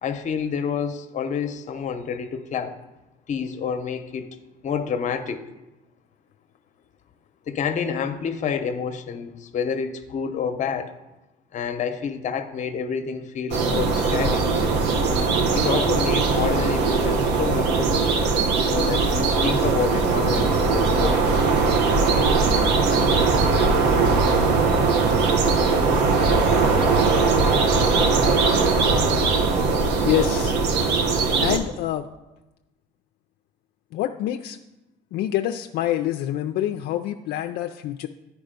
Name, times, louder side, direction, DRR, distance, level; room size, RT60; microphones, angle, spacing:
voice 1, 0.0-2.7 3.3-4.3 4.6-5.4 7.5-10.9 11.5-14.5 15.5-18.1 18.7-21.7, left 6 dB, 45° left, 8 dB, 0.8 m, -28 dB
sound 1, 13.5-31.6, right 4 dB, 85° right, 0.9 m, -20 dB
voice 2, 30.0-30.6 31.4-32.1 33.9-34.6 35.1-38.1, left 12 dB, 75° left, 6 dB, 0.4 m, -26 dB
9.5 x 4.8 x 5.1 m, 1.0 s
cardioid pair, 110°, 17 cm